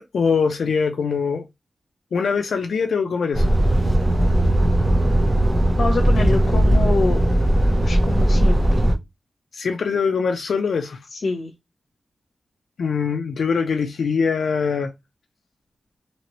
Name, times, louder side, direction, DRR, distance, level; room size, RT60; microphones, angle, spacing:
voice 1, 0.0-1.5 2.1-3.5 9.5-11.0 12.8-14.9, left 5 dB, 85° left, 0.3 m, -22 dB
Truck, 3.3-8.9, right 1 dB, 30° right, 0.7 m, -18 dB
voice 2, 5.8-7.3 7.8-8.8 11.1-11.5, left 3 dB, 70° left, 0.7 m, -26 dB
2.9 x 2.8 x 2.9 m
wide cardioid pair, 170°, 0 cm